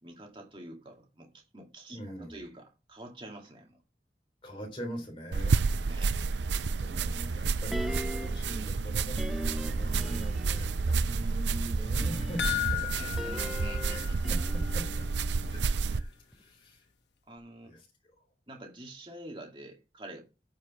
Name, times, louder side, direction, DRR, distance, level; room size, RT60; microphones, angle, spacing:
voice 1, 0.0-3.8 5.8-6.2 12.9-14.2 17.3-17.7 18.5-20.2, right 1 dB, 30° right, 2.0 m, -47 dB
voice 2, 1.9-2.3 4.4-5.6 6.8-12.9 13.9-15.0 15.5-15.6 15.9-16.8 17.6-17.8, right 1 dB, 30° left, 3.2 m, -42 dB
sound 1, 5.3-16.0, right 4 dB, 90° right, 0.5 m, -30 dB
sound 2, 7.7-8.5 9.2-10.8 11.8-16.0 16.3-16.4, equal, ahead, 0.4 m, -40 dB
sound 3, 12.4-14.9 15.2-15.3 15.8-15.9, left 14 dB, 85° left, 1.2 m, -35 dB
9.1 x 5.2 x 7.4 m
head